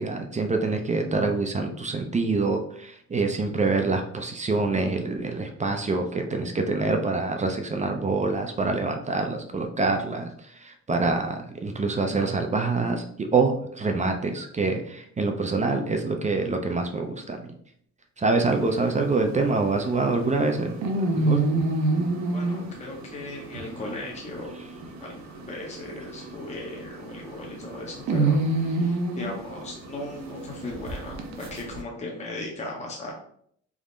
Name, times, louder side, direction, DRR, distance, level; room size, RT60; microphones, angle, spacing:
voice 1, 0.0-17.5 18.2-21.4, right 3 dB, 25° right, 4 dB, 0.5 m, -26 dB
sound 1, 18.4-31.8, right 2 dB, 65° right, 0.7 m, -29 dB
voice 2, 22.3-24.5 25.0-28.4 28.6-33.1, left 2 dB, 20° left, -1 dB, 0.8 m, -37 dB
3.6 x 2.1 x 3.8 m, 0.65 s
cardioid pair, 90°, 30 cm